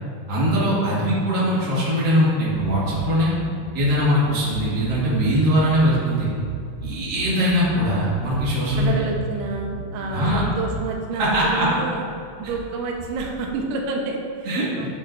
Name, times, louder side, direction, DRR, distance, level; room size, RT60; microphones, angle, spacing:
voice 1, 0.3-3.3 3.7-6.3 6.8-8.9 10.1-10.4 11.2-11.7 14.4-14.9, equal, 70° right, -7 dB, 0.9 m, -21 dB
sound 1, 2.9-10.1, right 2 dB, 75° left, 3.3 m, -35 dB
sound 2, 7.8-13.9, left 3 dB, 90° left, 3.6 m, -38 dB
voice 2, 8.8-12.0 12.4-14.9, right 4 dB, 85° right, 0 dB, 3.5 m, -28 dB
10.0 x 9.0 x 2.7 m, 2.4 s
omnidirectional pair, 5.2 m